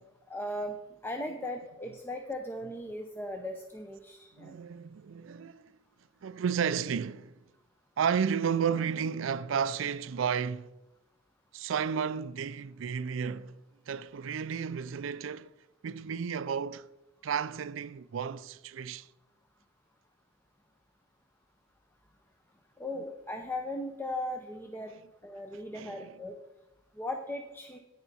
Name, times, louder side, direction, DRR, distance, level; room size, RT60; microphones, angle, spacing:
voice 1, 0.3-0.8 1.0-4.6 22.8-24.9 25.2-26.4 27.0-27.8, left 1 dB, 10° left, 0.6 m, -37 dB
voice 2, 4.4-5.7 6.2-7.3 8.0-10.7 11.5-13.6 13.9-15.5 15.8-16.9 17.2-19.1 25.7-26.1, right 7 dB, 75° right, 0.4 m, -32 dB
10.5 x 9.0 x 4.2 m
head